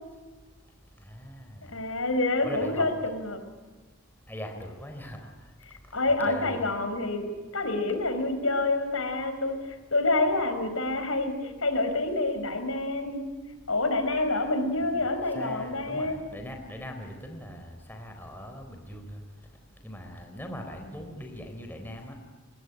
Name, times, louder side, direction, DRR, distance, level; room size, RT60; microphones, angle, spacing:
voice 1, 1.1-1.7 2.4-3.0 4.3-5.3 6.3-6.6 14.8-15.0 15.3-19.2 19.8-22.2, equal, 10° left, 4 dB, 4.0 m, -41 dB
voice 2, 1.7-3.4 5.9-7.3 7.5-13.2 13.7-16.2, left 2 dB, 75° left, 8 dB, 5.1 m, -27 dB
27.5 x 21.5 x 10.0 m, 1.3 s
head